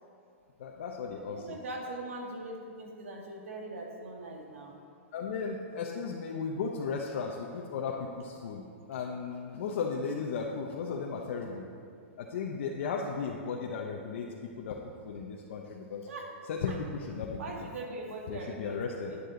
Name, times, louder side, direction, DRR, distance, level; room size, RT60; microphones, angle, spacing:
voice 1, 0.6-1.6 5.1-11.7 12.2-14.8 15.0-16.1 16.5-17.4 18.3-19.1, left 5 dB, 65° left, -1 dB, 0.9 m, -35 dB
voice 2, 1.3-4.8 16.0-16.4 16.7-16.8 17.4-19.2, right 2 dB, 80° right, 1 dB, 1.9 m, -41 dB
9.7 x 9.5 x 3.9 m, 2.3 s
hypercardioid pair, 145°, 7 cm